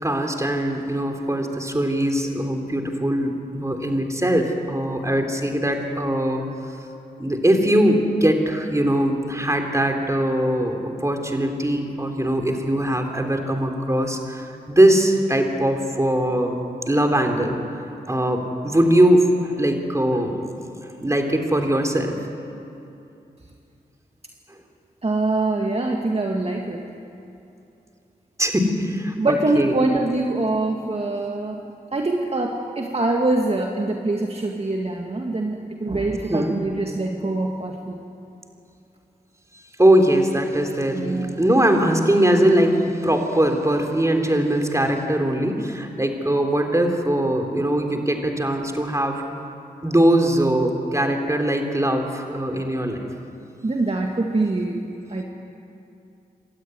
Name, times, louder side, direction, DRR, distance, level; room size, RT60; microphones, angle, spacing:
voice 1, 0.0-6.4 7.2-16.6 16.9-17.6 18.1-20.4 20.8-22.2 28.4-29.7 36.3-36.6 39.8-49.2 49.8-53.0, right 1 dB, 20° right, 3 dB, 3.6 m, -21 dB
voice 2, 25.0-26.8 29.2-31.6 31.9-38.0 40.9-41.4 53.6-54.8 55.1-55.2, right 2 dB, 40° right, 1 dB, 2.0 m, -24 dB
27.5 x 13.0 x 9.5 m, 2.7 s
cardioid pair, 50°, 16 cm